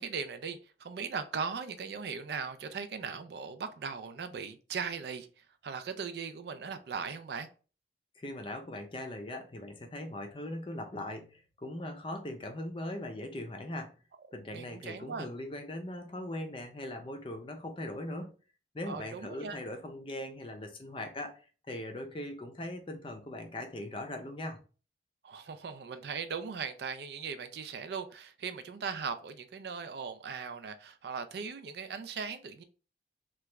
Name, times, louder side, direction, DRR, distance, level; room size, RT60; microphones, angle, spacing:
voice 1, 0.0-7.5 14.5-15.3 18.8-19.6 25.2-32.6, right 5 dB, 60° right, 0.4 m, -39 dB
voice 2, 8.2-13.9 14.3-18.3 18.7-24.6, left 1 dB, 30° left, 0.5 m, -40 dB
3.0 x 2.3 x 3.2 m
head